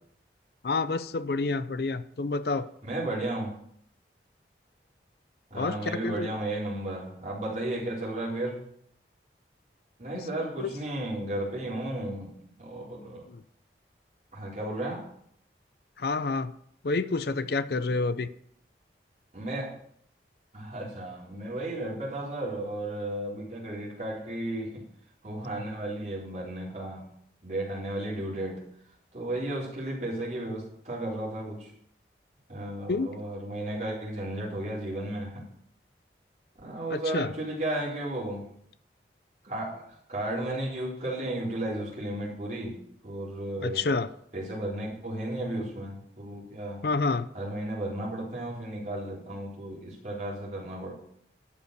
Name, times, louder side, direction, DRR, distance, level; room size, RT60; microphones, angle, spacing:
voice 1, 0.6-2.7 5.5-6.3 10.6-10.7 13.3-13.4 16.0-16.5 16.8-18.3 32.9-33.1 36.9-37.3 43.6-44.1 46.8-47.3, left 3 dB, 60° left, 13 dB, 0.5 m, -28 dB
voice 2, 2.8-3.5 5.5-8.7 10.0-12.3 12.6-13.3 14.3-15.0 19.3-19.7 20.5-24.8 25.2-27.1 27.4-28.6 29.1-31.7 32.5-35.5 36.6-38.5 39.4-43.9 44.3-46.9 47.3-50.9, right 1 dB, 40° right, -5 dB, 3.9 m, -34 dB
12.0 x 5.5 x 6.6 m, 0.68 s
head